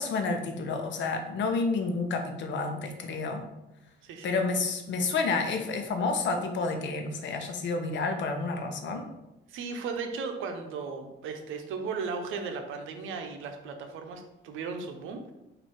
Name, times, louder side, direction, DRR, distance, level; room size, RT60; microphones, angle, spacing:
voice 1, 0.0-3.4 4.2-9.1, left 3 dB, 65° left, 4 dB, 0.8 m, -30 dB
voice 2, 4.0-4.3 9.5-15.3, right 5 dB, 85° right, 5 dB, 0.7 m, -36 dB
4.3 x 2.6 x 4.6 m, 0.96 s
cardioid pair, 90°, 20 cm